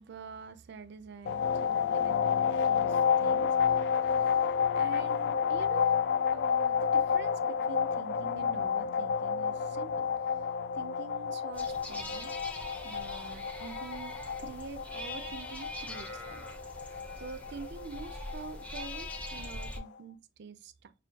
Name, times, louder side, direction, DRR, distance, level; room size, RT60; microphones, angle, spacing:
voice 1, 0.0-6.0 6.3-10.5 10.7-12.3 12.8-16.5 17.2-20.9, right 5 dB, 60° right, 0.4 m, -46 dB
sound 1, 1.3-19.8, left 7 dB, 60° left, 0.3 m, -30 dB
sound 2, 11.5-19.8, left 1 dB, 5° left, 0.6 m, -43 dB
6.2 x 2.2 x 2.8 m
head